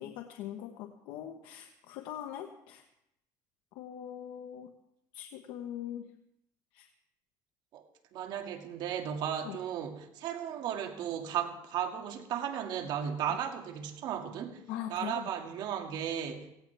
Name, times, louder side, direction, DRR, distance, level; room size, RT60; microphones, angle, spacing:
voice 1, 0.0-2.8 3.7-4.7 5.1-6.1 6.7-6.9 9.4-9.6 14.7-15.3, left 11 dB, 80° left, 4 dB, 1.1 m, -41 dB
voice 2, 8.1-14.6 14.9-16.5, right 9 dB, 65° right, 4 dB, 2.0 m, -35 dB
17.5 x 16.5 x 3.4 m, 0.81 s
cardioid pair, 120°, 8 cm